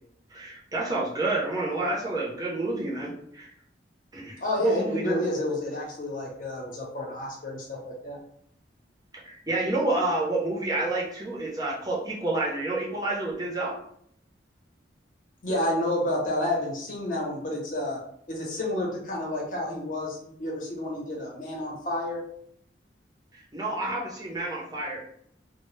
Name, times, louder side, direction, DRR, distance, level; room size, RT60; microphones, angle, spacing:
voice 1, 0.3-3.5 4.1-5.2 9.2-13.8 23.3-25.0, right 2 dB, 20° right, -3 dB, 0.5 m, -29 dB
voice 2, 4.4-8.2 15.4-18.0 18.3-22.2, left 1 dB, 45° left, -2 dB, 0.7 m, -30 dB
2.0 x 2.0 x 3.0 m, 0.69 s
head